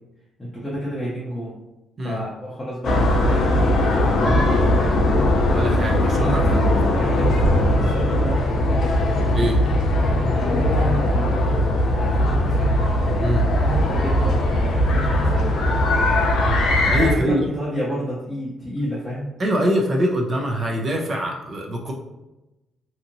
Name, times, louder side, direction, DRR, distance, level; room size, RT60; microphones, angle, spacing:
voice 1, 0.4-1.6 2.0-4.8 6.5-8.8 10.2-11.6 11.9-12.8 13.6-15.5 17.1-19.3, equal, 10° left, -8 dB, 0.6 m, -30 dB
sound 1, 2.8-17.1, left 1 dB, 65° left, 0.5 m, -19 dB
voice 2, 5.5-6.7 9.3-9.6 13.2-13.5 16.8-17.5 19.4-21.9, equal, 35° right, 0 dB, 0.5 m, -23 dB
2.7 x 2.6 x 2.6 m, 0.97 s
cardioid pair, 135°, 0 cm